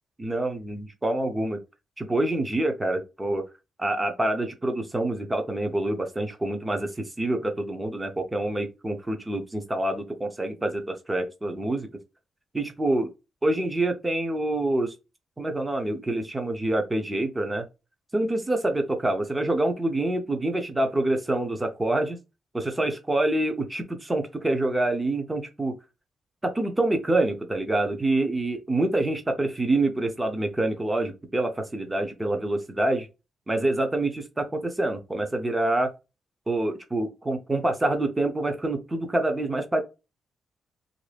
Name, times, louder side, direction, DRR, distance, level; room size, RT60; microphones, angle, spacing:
voice 1, 0.2-1.6 2.0-3.4 3.8-11.9 12.5-13.1 13.4-14.9 15.4-17.7 18.1-22.2 22.5-25.7 26.4-33.1 33.5-35.9 36.5-39.8, right 2 dB, 10° right, 0.6 m, -26 dB
3.2 x 2.5 x 3.3 m
wide cardioid pair, 175°, 0 cm